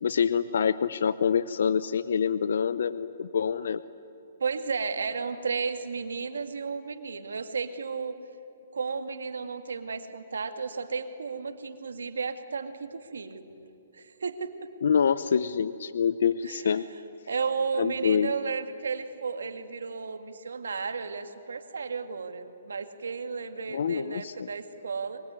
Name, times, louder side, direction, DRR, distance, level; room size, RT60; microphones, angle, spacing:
voice 1, 0.0-3.8 14.8-16.9 17.8-18.3 23.7-24.3, left 7 dB, 70° left, 15 dB, 0.8 m, -26 dB
voice 2, 4.4-8.2 8.7-13.5 13.9-14.7 16.4-16.7 17.3-25.2, right 5 dB, 90° right, 8 dB, 2.1 m, -33 dB
24.0 x 24.0 x 9.7 m, 2.9 s
hypercardioid pair, 150°, 0 cm